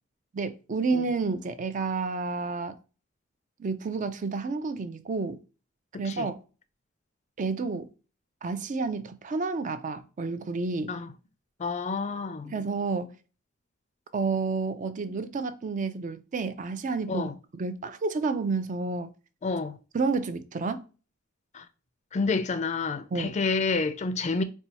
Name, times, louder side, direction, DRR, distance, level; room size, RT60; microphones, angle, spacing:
voice 1, 0.3-2.7 3.6-5.4 6.0-6.4 7.4-7.9 8.4-11.0 12.4-13.1 14.1-17.3 17.6-19.1 19.9-20.8 23.1-23.3, right 4 dB, 40° right, 0.4 m, -30 dB
voice 2, 5.9-6.3 10.9-11.1 11.6-12.5 17.1-17.3 19.4-19.8 21.5-21.6 22.1-24.4, left 4 dB, 35° left, 0.4 m, -29 dB
4.3 x 2.2 x 2.8 m
head